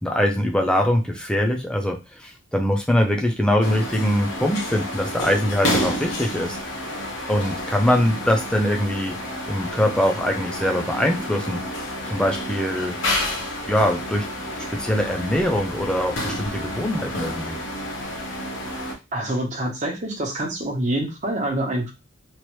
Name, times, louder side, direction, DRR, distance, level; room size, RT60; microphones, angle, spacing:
voice 1, 0.0-6.9 7.3-9.1 9.5-11.6 12.1-13.0 13.7-14.3 14.6-17.6, equal, 5° left, 2 dB, 0.5 m, -23 dB
sound 1, 3.6-18.9, left 1 dB, 65° left, 0.9 m, -30 dB
voice 2, 19.1-21.9, right 1 dB, 35° right, 0 dB, 0.9 m, -26 dB
3.1 x 2.6 x 3.0 m, 0.26 s
head